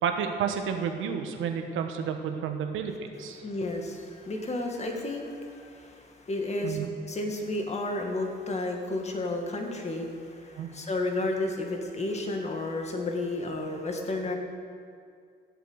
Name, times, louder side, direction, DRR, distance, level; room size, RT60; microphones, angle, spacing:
voice 1, 0.0-3.4 6.6-6.9 10.6-10.7, right 7 dB, 85° right, 5 dB, 1.4 m, -31 dB
voice 2, 3.4-6.8 7.1-14.4, left 2 dB, 35° left, 2 dB, 2.1 m, -32 dB
14.5 x 8.3 x 6.5 m, 2.3 s
cardioid pair, 90°, 20 cm